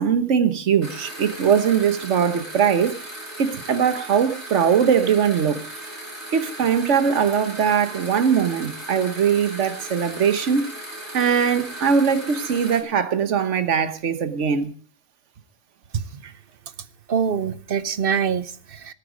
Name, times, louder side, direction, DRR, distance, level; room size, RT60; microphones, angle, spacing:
voice 1, 0.0-3.0 3.4-5.7 6.3-10.7 11.1-14.7, right 7 dB, 65° right, 1.4 m, -21 dB
sound 1, 0.8-12.8, right 1 dB, 30° right, 5.0 m, -37 dB
voice 2, 17.1-18.9, right 7 dB, 50° right, 0.9 m, -24 dB
18.0 x 8.5 x 5.1 m
omnidirectional pair, 1.3 m